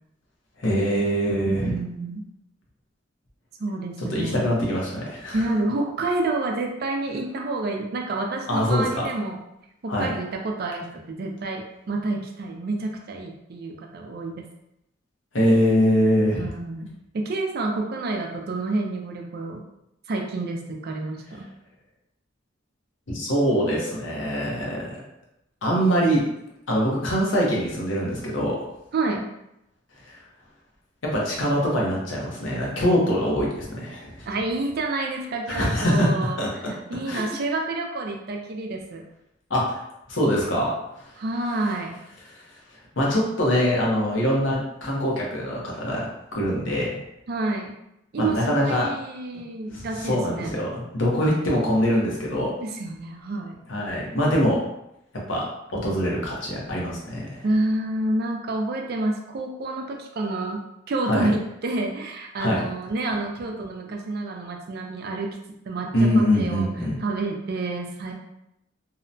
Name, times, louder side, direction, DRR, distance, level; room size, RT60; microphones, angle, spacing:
voice 1, 0.6-1.7 4.1-5.4 8.5-9.0 9.9-10.1 15.3-16.5 23.1-25.0 25.6-26.2 26.7-28.7 31.0-34.3 35.5-36.1 36.4-36.7 37.1-37.2 39.5-39.8 40.1-40.7 43.0-47.0 48.2-48.9 49.7-52.5 53.7-54.6 55.3-55.4 55.7-57.4 61.1-61.3 62.4-62.6 65.9-67.0, equal, 75° left, -3 dB, 0.8 m, -23 dB
voice 2, 1.4-2.2 3.6-4.5 5.3-9.4 9.8-14.5 16.3-19.6 20.1-21.5 28.9-29.3 34.3-39.0 41.2-41.9 47.3-47.8 48.1-50.5 52.6-53.6 57.4-66.7 67.0-68.1, right 2 dB, 55° right, 2 dB, 0.4 m, -29 dB
2.7 x 2.1 x 2.6 m, 0.83 s
head